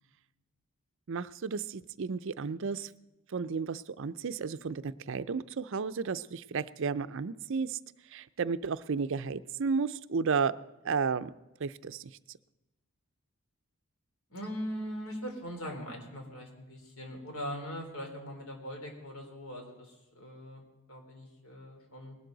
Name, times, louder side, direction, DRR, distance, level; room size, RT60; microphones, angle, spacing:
voice 1, 1.1-2.9 3.3-7.8 8.0-10.6 10.8-11.3 11.6-12.4, right 5 dB, 60° right, 15 dB, 0.5 m, -33 dB
voice 2, 14.3-22.2, equal, 70° left, 2 dB, 3.6 m, -41 dB
19.5 x 12.5 x 3.9 m, 1.0 s
head